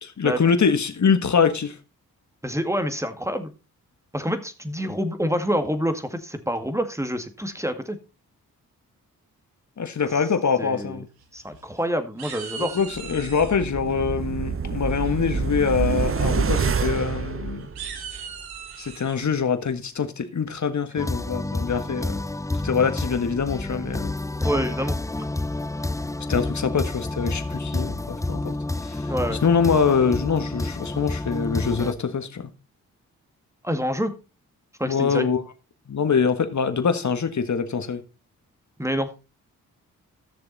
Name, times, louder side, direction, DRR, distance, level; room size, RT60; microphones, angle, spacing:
voice 1, 0.0-1.8 9.8-11.1 12.6-17.7 18.8-22.2 22.6-24.2 26.3-28.6 28.8-32.5 34.8-35.4 35.9-38.0, left 6 dB, 50° left, 1.6 m, -24 dB
voice 2, 2.4-3.5 4.1-8.0 10.6-11.0 11.3-12.8 24.4-25.0 29.1-29.4 33.6-34.1 34.8-35.3 38.8-39.1, equal, 10° right, 2.1 m, -27 dB
sound 1, 11.2-11.8 12.2-13.6 15.0-15.4 15.8-16.1 16.3-16.5 16.9-17.0 17.6-19.2, right 7 dB, 85° right, 1.6 m, -39 dB
sound 2, 13.0-18.2 18.5-18.6, right 5 dB, 35° right, 0.9 m, -27 dB
sound 3, 21.0-31.9, left 2 dB, 10° left, 0.6 m, -29 dB
14.0 x 6.8 x 4.1 m
supercardioid pair, 40°, 37 cm